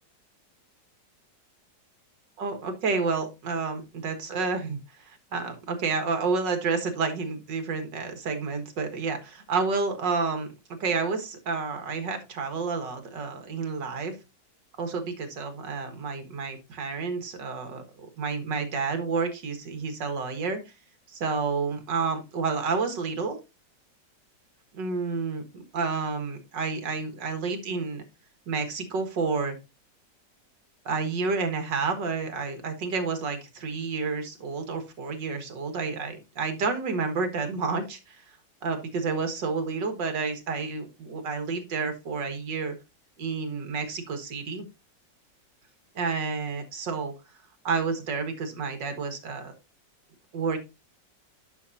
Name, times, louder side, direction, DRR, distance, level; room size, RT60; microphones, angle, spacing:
voice 1, 2.4-14.2 14.8-20.7 21.1-23.4 24.7-28.0 28.5-29.6 30.9-38.2 38.6-42.8 43.2-44.7 46.0-47.1 47.6-49.5 50.3-50.6, right 4 dB, 80° right, 7 dB, 2.3 m, -30 dB
10.5 x 6.0 x 2.7 m, 0.25 s
omnidirectional pair, 1.9 m